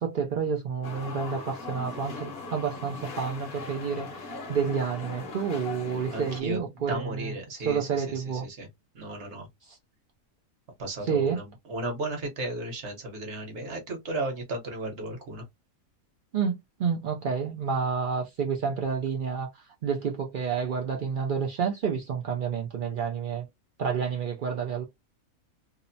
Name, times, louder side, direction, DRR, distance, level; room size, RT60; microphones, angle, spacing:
voice 1, 0.0-8.5 9.7-9.8 11.0-11.4 16.3-23.5 23.8-24.8, right 6 dB, 75° right, 0.4 m, -29 dB
sound 1, 0.8-6.4, left 3 dB, 55° left, 0.7 m, -39 dB
voice 2, 6.1-8.7 8.9-9.5 10.8-15.5, right 2 dB, 55° right, 1.1 m, -35 dB
2.7 x 2.0 x 2.5 m
omnidirectional pair, 1.4 m